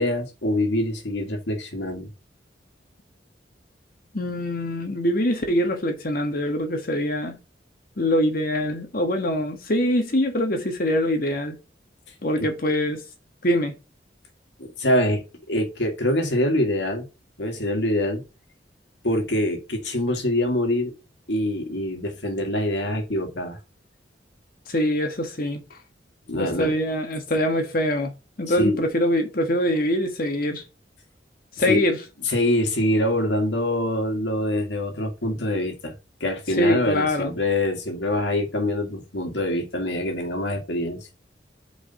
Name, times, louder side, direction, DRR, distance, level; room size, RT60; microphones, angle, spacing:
voice 1, 0.0-2.1 14.6-17.1 17.4-18.2 19.0-20.9 21.3-23.6 26.3-26.7 28.5-28.8 31.6-31.8 32.3-35.9 36.2-41.1, left 1 dB, 80° left, 2.2 m, -25 dB
voice 2, 4.1-7.4 8.0-11.6 12.2-13.0 13.4-13.7 24.7-25.6 26.4-28.1 28.4-30.6 31.6-32.0 36.6-37.3, left 1 dB, 55° left, 1.5 m, -23 dB
5.0 x 5.0 x 5.6 m
head